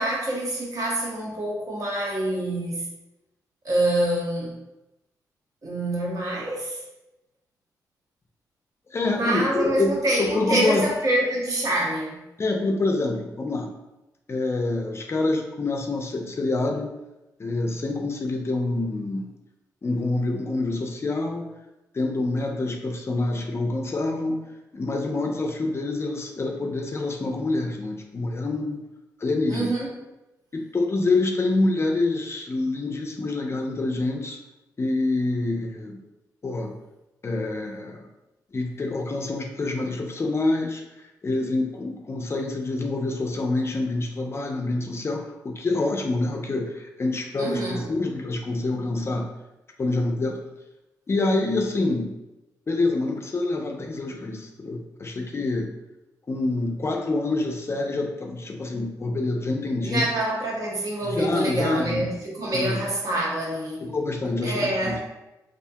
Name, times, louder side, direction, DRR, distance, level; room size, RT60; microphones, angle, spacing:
voice 1, 0.0-2.8 3.6-4.6 5.6-6.8 9.0-12.2 29.5-29.9 47.4-47.9 59.8-63.8 64.4-65.0, right 1 dB, 55° right, 0.9 m, -26 dB
voice 2, 8.9-10.9 12.4-13.7 14.3-16.9 17.4-19.3 19.8-21.5 21.9-24.4 24.7-28.8 29.2-29.7 30.5-34.4 34.8-36.0 36.4-36.7 37.2-38.1 38.5-49.3 49.8-50.4 51.1-52.1 52.7-55.7 56.3-60.1 61.0-62.1 62.5-62.8 63.8-65.0, left 2 dB, 40° left, 0.4 m, -26 dB
2.4 x 2.1 x 2.6 m
supercardioid pair, 55°, 7 cm